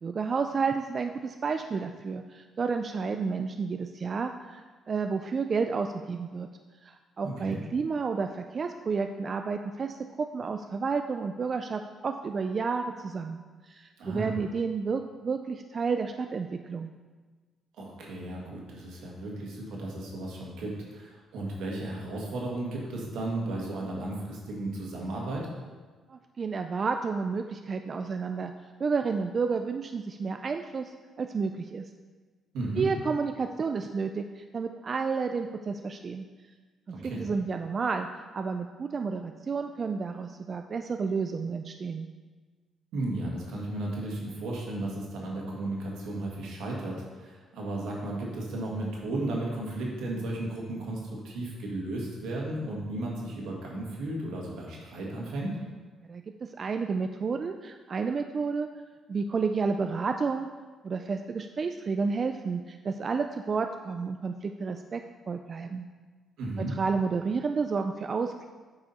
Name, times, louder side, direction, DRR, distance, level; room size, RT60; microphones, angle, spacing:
voice 1, 0.0-6.5 6.8-16.9 26.1-28.5 28.8-31.9 32.8-36.3 37.0-38.1 38.3-42.1 56.1-58.7 59.1-60.5 60.8-65.9 66.7-68.5, right 5 dB, 45° right, 6 dB, 0.3 m, -31 dB
voice 2, 7.2-7.6 14.0-14.3 17.8-25.5 32.5-32.9 36.9-37.2 42.9-55.6 66.4-66.7, right 2 dB, 85° right, -2 dB, 1.8 m, -34 dB
8.5 x 4.9 x 4.2 m, 1.4 s
cardioid pair, 90°, 0 cm